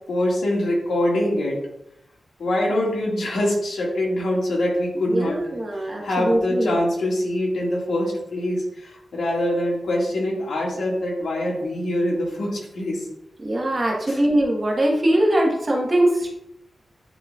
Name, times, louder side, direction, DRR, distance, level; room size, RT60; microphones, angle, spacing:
voice 1, 0.1-1.6 2.4-5.4 5.7-13.1 14.0-14.2, left 1 dB, 80° left, -3 dB, 2.0 m, -24 dB
voice 2, 5.1-6.8 13.4-16.3, right 1 dB, 30° right, -2 dB, 1.3 m, -21 dB
10.0 x 4.2 x 2.4 m, 0.81 s
wide cardioid pair, 170°, 0 cm